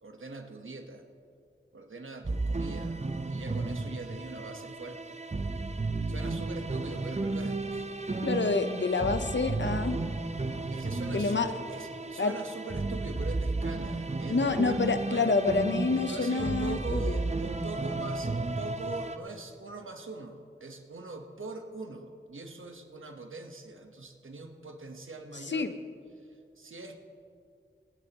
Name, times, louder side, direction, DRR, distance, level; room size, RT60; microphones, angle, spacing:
voice 1, 0.0-1.0 1.7-3.0 3.3-5.2 6.1-7.8 10.7-15.4 16.0-25.7 26.3-27.0, right 3 dB, 90° right, 4 dB, 1.1 m, -42 dB
sound 1, 2.2-19.2, right 2 dB, 35° right, 0.7 m, -33 dB
voice 2, 8.2-10.0 11.1-11.5 12.2-12.3 14.3-17.2 25.5-25.7, left 3 dB, 65° left, 9 dB, 0.8 m, -28 dB
26.0 x 10.0 x 3.0 m, 2.4 s
wide cardioid pair, 50°, 20 cm